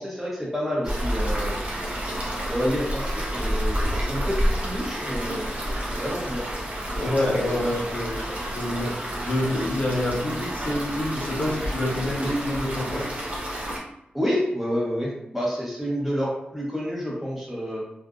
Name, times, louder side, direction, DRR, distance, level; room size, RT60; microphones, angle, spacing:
voice 1, 0.0-1.6 2.5-6.4 7.3-7.7 14.1-17.8, equal, 5° right, -5 dB, 1.0 m, -29 dB
sound 1, 0.8-13.8, equal, 40° right, 0.7 m, -29 dB
voice 2, 6.9-8.9 9.2-13.1, left 1 dB, 50° left, -4 dB, 0.8 m, -27 dB
2.5 x 2.5 x 2.3 m, 0.86 s
wide cardioid pair, 75°, 4 cm